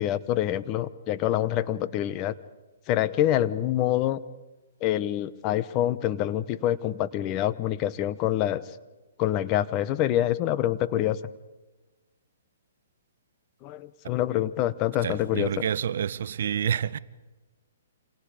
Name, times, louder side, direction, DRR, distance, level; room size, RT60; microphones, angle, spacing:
voice 1, 0.0-2.3 2.9-4.2 4.8-8.6 9.2-11.2 13.6-15.5, left 12 dB, 30° left, 1.1 m, -26 dB
voice 2, 15.0-17.0, right 8 dB, 60° right, 0.8 m, -28 dB
29.5 x 27.0 x 5.1 m
hypercardioid pair, 130°, 0 cm